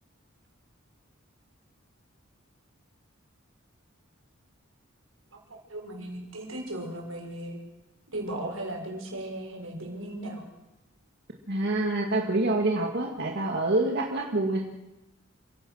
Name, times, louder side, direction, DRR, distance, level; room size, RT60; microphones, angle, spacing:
voice 1, 5.3-7.6 8.1-10.4, right 1 dB, 85° right, 1 dB, 6.0 m, -37 dB
voice 2, 11.5-14.6, right 2 dB, 55° right, 0 dB, 2.2 m, -26 dB
29.0 x 16.5 x 6.5 m, 1.0 s
head